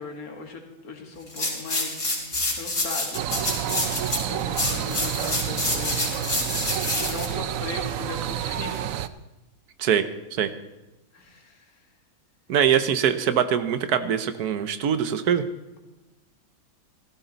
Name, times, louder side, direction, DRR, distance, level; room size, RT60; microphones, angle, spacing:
voice 1, 0.0-2.1 2.5-3.3 4.1-6.1 6.9-8.8 11.1-11.7 15.7-15.8, left 3 dB, 70° left, 3 dB, 2.3 m, -38 dB
sound 1, 1.3-8.3, left 2 dB, 45° left, 3.6 m, -28 dB
sound 2, 3.1-9.1, right 11 dB, 70° right, 0.9 m, -29 dB
voice 2, 12.5-15.4, right 8 dB, 85° right, 12 dB, 1.4 m, -23 dB
15.5 x 13.5 x 4.0 m, 1.0 s
omnidirectional pair, 1.6 m